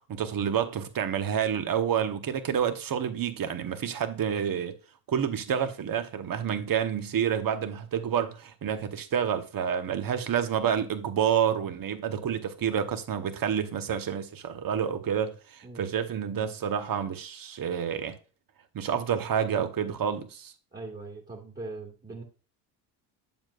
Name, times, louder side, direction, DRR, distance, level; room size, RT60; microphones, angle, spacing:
voice 1, 0.1-4.8 5.1-18.2 18.7-20.5, right 8 dB, 45° right, 1.1 m, -29 dB
voice 2, 20.7-22.2, right 3 dB, 20° right, 1.8 m, -41 dB
7.4 x 7.2 x 2.4 m
supercardioid pair, 65°, 48 cm